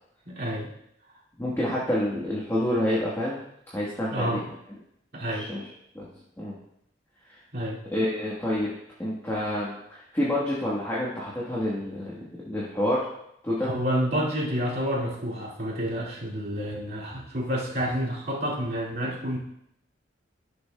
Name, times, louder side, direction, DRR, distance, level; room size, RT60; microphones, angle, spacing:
voice 1, 0.3-0.7 4.1-4.4 5.1-5.5 7.5-7.8 13.6-19.4, equal, 55° right, -6 dB, 2.3 m, -29 dB
voice 2, 1.4-3.4 3.7-4.4 5.3-5.6 5.9-6.1 6.4-6.6 7.2-7.4 7.9-13.1 13.4-13.7, left 1 dB, 15° left, -6 dB, 1.3 m, -28 dB
12.0 x 6.8 x 2.2 m, 0.77 s
head